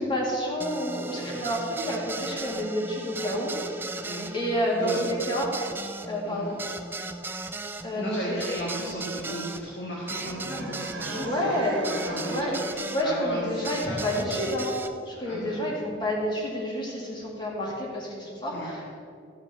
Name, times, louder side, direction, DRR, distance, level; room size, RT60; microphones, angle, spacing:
voice 1, 0.0-3.5 4.3-5.5 6.1-6.6 7.8-8.4 11.1-11.8 12.3-12.5 12.9-14.7 15.1-18.9, equal, 25° left, -4 dB, 2.6 m, -29 dB
sound 1, 0.6-13.1 13.6-14.9, right 3 dB, 10° right, 0.4 m, -37 dB
voice 2, 4.0-4.4 4.8-5.0 6.3-6.5 8.0-11.6 11.9-14.5 15.3-15.7 18.5-18.7, equal, 60° left, -5 dB, 2.1 m, -36 dB
sound 2, 10.0-14.1, right 2 dB, 85° right, 1.1 m, -39 dB
14.5 x 5.1 x 7.0 m, 2.4 s
head